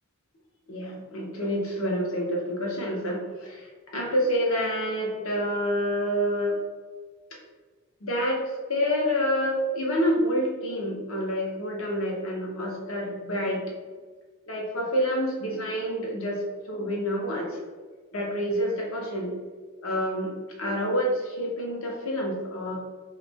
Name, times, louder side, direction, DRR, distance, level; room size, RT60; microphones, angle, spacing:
voice 1, 0.7-6.6 8.0-8.4 8.7-13.7 14.5-17.6 18.1-19.3 19.8-20.3 20.6-22.8, equal, 80° left, -1 dB, 0.8 m, -28 dB
2.9 x 2.3 x 3.4 m, 1.4 s
head